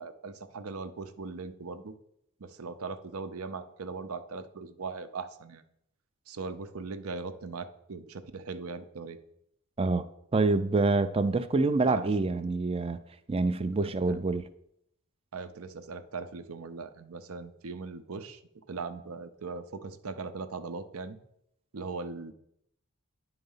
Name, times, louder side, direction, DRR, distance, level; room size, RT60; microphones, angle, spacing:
voice 1, 0.0-1.9 2.4-5.6 6.3-9.2 11.9-12.1 13.8-14.3 15.3-21.2 21.7-22.3, right 4 dB, 80° right, 0.7 m, -39 dB
voice 2, 10.3-13.0 13.3-14.4, right 3 dB, 25° right, 0.4 m, -26 dB
9.8 x 4.0 x 5.5 m
head